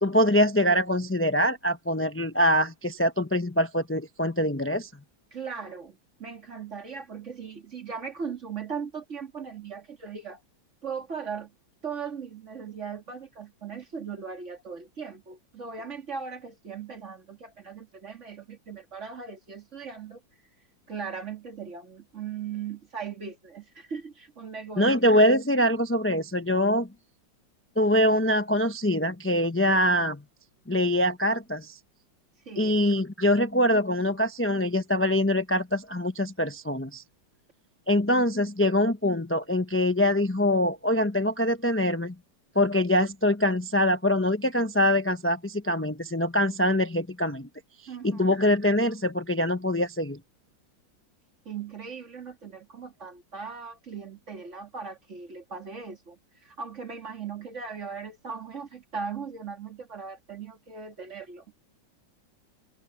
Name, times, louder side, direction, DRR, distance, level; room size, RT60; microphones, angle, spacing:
voice 1, 0.0-4.9 24.8-26.9 27.8-30.2 30.7-31.8 32.6-37.0 37.9-42.1 42.5-47.5 48.0-50.2, left 1 dB, 15° left, 0.5 m, -24 dB
voice 2, 5.3-10.4 10.8-11.5 11.8-20.2 20.9-25.0 32.5-32.8 47.9-48.4 51.4-61.4, right 6 dB, 40° right, 2.7 m, -38 dB
open air
omnidirectional pair, 2.0 m